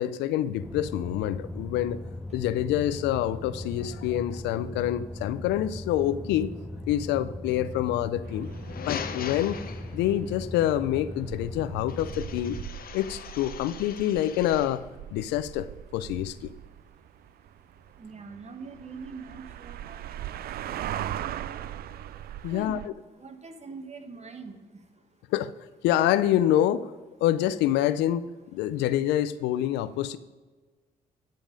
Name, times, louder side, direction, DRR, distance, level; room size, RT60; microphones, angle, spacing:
voice 1, 0.0-2.0 2.3-6.5 6.9-8.5 8.9-9.6 9.9-12.6 12.9-14.8 15.1-16.5 22.4-22.8 25.3-25.5 25.8-26.9 27.2-30.2, left 12 dB, 80° left, 15 dB, 0.4 m, -26 dB
sound 1, 0.6-12.7, left 1 dB, ahead, 0.9 m, -39 dB
sound 2, 8.2-22.9, right 11 dB, 60° right, 0.4 m, -40 dB
sound 3, 8.4-10.3 11.9-14.9, left 7 dB, 60° left, 0.9 m, -40 dB
voice 2, 18.0-20.2 22.5-22.8 23.2-24.6, right 4 dB, 40° right, 7 dB, 1.3 m, -43 dB
10.5 x 5.3 x 5.1 m, 1.3 s
hypercardioid pair, 50°, 18 cm